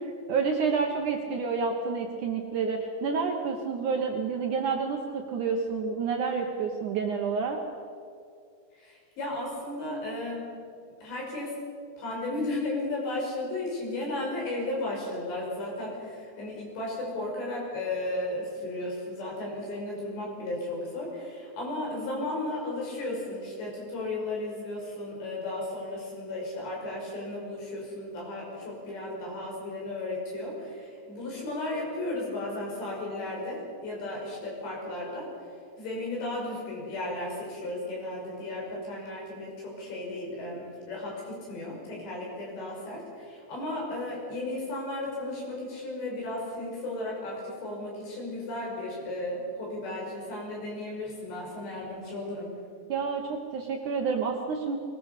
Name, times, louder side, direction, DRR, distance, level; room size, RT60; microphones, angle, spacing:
voice 1, 0.3-7.6 52.9-54.8, right 5 dB, 65° right, 2 dB, 2.0 m, -29 dB
voice 2, 8.7-10.4 11.0-11.5 12.0-35.3 35.8-52.5, left 2 dB, 75° left, -2 dB, 7.8 m, -34 dB
22.0 x 20.0 x 6.7 m, 2.3 s
omnidirectional pair, 5.0 m